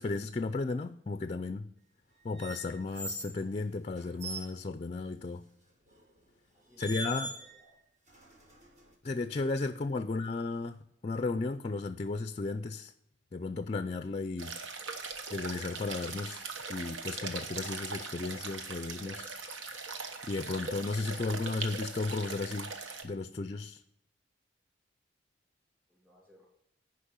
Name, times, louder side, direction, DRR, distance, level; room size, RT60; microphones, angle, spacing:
voice 1, 0.0-1.7 2.2-5.4 6.8-7.3 9.0-12.9 13.3-14.5 15.3-19.3 20.2-22.7 23.0-23.8, left 3 dB, 30° left, 10 dB, 0.4 m, -34 dB
sound 1, 2.3-3.4 4.0-4.5 5.9-6.1 6.8-7.7 8.1-8.9, right 2 dB, 40° right, 1.5 m, -42 dB
voice 2, 6.5-7.8 9.7-9.9 25.9-26.5, left 1 dB, 10° right, -2 dB, 3.0 m, -60 dB
sound 2, 14.4-23.0, right 4 dB, 90° right, 1.1 m, -40 dB
10.0 x 5.2 x 5.5 m, 0.76 s
head